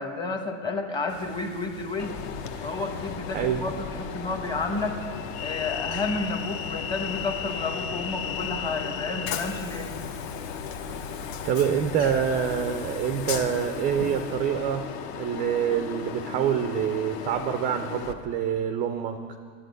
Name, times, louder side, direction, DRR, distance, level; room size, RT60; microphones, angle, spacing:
voice 1, 0.0-2.2 2.6-5.0 5.4-9.9, left 3 dB, 10° left, 4 dB, 1.1 m, -31 dB
sound 1, 1.1-14.8, left 3 dB, 70° left, 1.6 m, -46 dB
Train, 2.0-18.1, left 7 dB, 50° left, 1.0 m, -35 dB
voice 2, 3.3-3.7 11.4-19.4, right 8 dB, 20° right, 8 dB, 0.4 m, -26 dB
10.5 x 8.3 x 9.4 m, 2.3 s
supercardioid pair, 140°, 40 cm